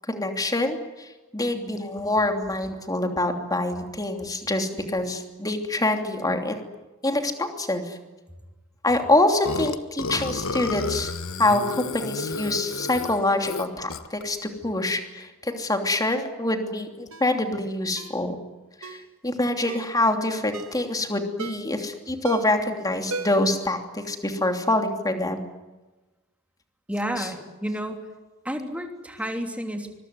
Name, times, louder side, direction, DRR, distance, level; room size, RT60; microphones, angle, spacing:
voice 1, 0.1-6.6 7.0-8.0 8.8-11.1 11.4-18.4 18.8-25.5 27.1-27.3, left 2 dB, 15° left, 5 dB, 3.0 m, -25 dB
Burping eructation, 9.5-14.2, left 3 dB, 65° left, 1.4 m, -31 dB
Ringtone, 17.1-17.3 18.0-18.2 18.8-19.1 19.7-20.0 20.5-20.8 21.4-21.8 22.2-22.6 23.1-23.6 23.9-24.0, right 3 dB, 70° right, 2.5 m, -35 dB
voice 2, 26.9-28.0 28.4-30.0, equal, 5° right, 4 dB, 3.1 m, -31 dB
25.0 x 22.5 x 9.6 m, 1.2 s
head